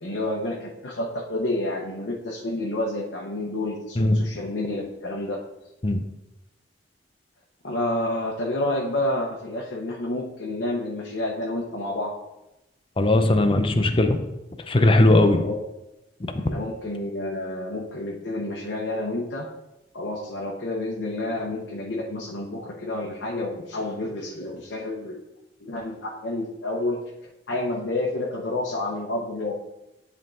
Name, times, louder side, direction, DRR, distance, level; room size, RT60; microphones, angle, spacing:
voice 1, 0.0-5.4 7.6-12.1 15.3-15.6 16.4-19.5 19.9-25.2 25.6-27.0 27.5-29.5, left 1 dB, 75° left, -3 dB, 1.0 m, -29 dB
voice 2, 13.0-14.2 14.7-15.4, left 2 dB, 30° left, 7 dB, 0.6 m, -18 dB
10.0 x 3.7 x 3.8 m, 0.94 s
head